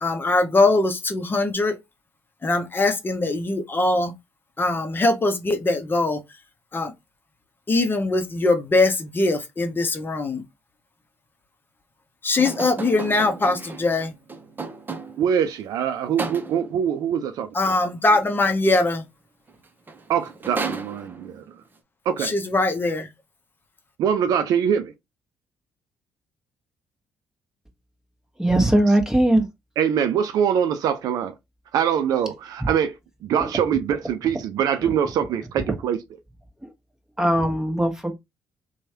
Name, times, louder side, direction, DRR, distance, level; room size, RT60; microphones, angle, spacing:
voice 1, 0.0-1.8 2.4-4.1 4.6-6.2 6.7-6.9 7.7-10.4 12.2-14.1 17.5-19.0 22.2-23.1, left 2 dB, 30° left, 0.7 m, -22 dB
sound 1, 12.4-15.4 16.2-16.8 19.5-19.6 19.9-21.4, right 4 dB, 30° right, 0.7 m, -34 dB
voice 2, 15.2-17.5 20.1-21.4 22.1-22.3 24.0-24.9 29.8-31.3 31.7-32.9 33.2-36.0, right 8 dB, 65° right, 0.4 m, -23 dB
voice 3, 28.4-29.4 32.6-32.7 33.4-33.5 34.8-34.9 36.6-36.7 37.2-38.1, right 1 dB, 5° right, 1.1 m, -20 dB
3.0 x 2.3 x 2.7 m
hypercardioid pair, 50°, 7 cm